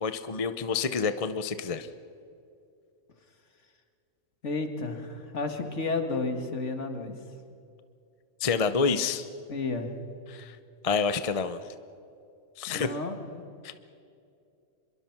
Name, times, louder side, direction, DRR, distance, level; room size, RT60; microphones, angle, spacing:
voice 1, 0.0-1.9 8.4-9.3 10.3-10.6 10.8-11.6 12.6-12.9 13.6-13.7, left 5 dB, 30° left, 11 dB, 0.7 m, -28 dB
voice 2, 4.4-7.1 9.5-9.9 12.7-13.5, left 3 dB, 60° left, 6 dB, 2.3 m, -32 dB
25.5 x 22.0 x 6.0 m, 2.5 s
omnidirectional pair, 1.4 m